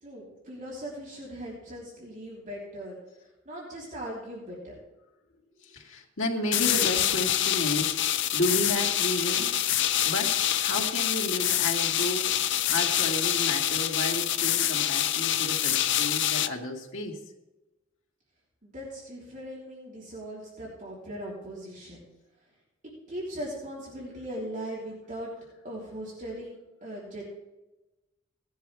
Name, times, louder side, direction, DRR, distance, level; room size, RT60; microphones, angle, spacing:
voice 1, 0.0-3.0 3.5-4.8 18.6-22.1 23.1-25.3 25.6-27.2, right 1 dB, 40° right, -5 dB, 3.5 m, -39 dB
voice 2, 5.6-8.0 8.3-9.6 10.0-12.4 12.7-17.2, left 1 dB, 80° left, 1 dB, 2.3 m, -32 dB
sound 1, 6.5-16.5, left 11 dB, 65° left, 0.7 m, -26 dB
18.0 x 10.5 x 3.5 m, 1.0 s
head